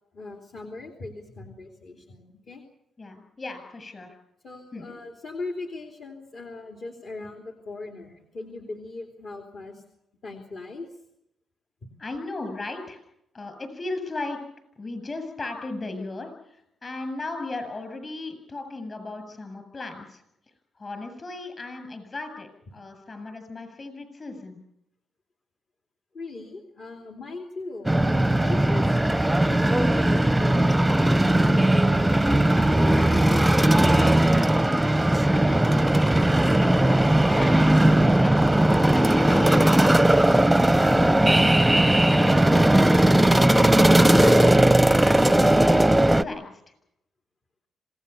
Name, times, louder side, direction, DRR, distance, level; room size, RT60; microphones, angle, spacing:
voice 1, 0.1-2.6 4.4-9.8 10.2-10.9 26.1-28.9 29.2-31.0 31.3-32.7 33.0-35.8, left 3 dB, 55° left, 3 dB, 3.2 m, -39 dB
voice 2, 3.0-4.1 4.7-4.9 12.0-13.0 13.3-14.4 14.8-20.2 20.7-24.6 37.3-38.7 39.0-43.1 43.9-46.5, left 2 dB, 30° left, 8 dB, 7.4 m, -36 dB
sound 1, 27.8-46.2, right 1 dB, 5° right, 0.8 m, -18 dB
26.5 x 18.0 x 7.1 m, 0.79 s
cardioid pair, 100°, 0 cm